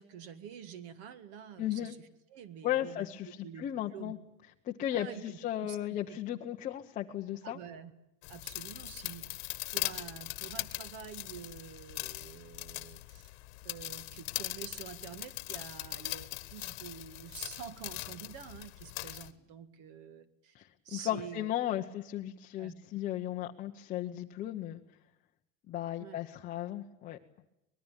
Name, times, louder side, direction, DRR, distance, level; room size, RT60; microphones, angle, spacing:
voice 1, 0.0-3.7 3.9-4.1 4.9-6.2 7.4-7.9 8.3-9.3 9.6-13.3 13.6-20.5 20.8-21.8 22.6-22.7 26.0-26.2, right 8 dB, 40° right, 14 dB, 1.9 m, -48 dB
voice 2, 1.6-1.9 2.6-4.2 4.6-7.6 20.5-24.8 25.7-27.2, left 12 dB, 20° left, 2 dB, 0.9 m, -35 dB
sound 1, 8.2-19.3, left 22 dB, 55° left, 1.5 m, -41 dB
25.0 x 20.5 x 8.9 m, 0.86 s
supercardioid pair, 180°, 37 cm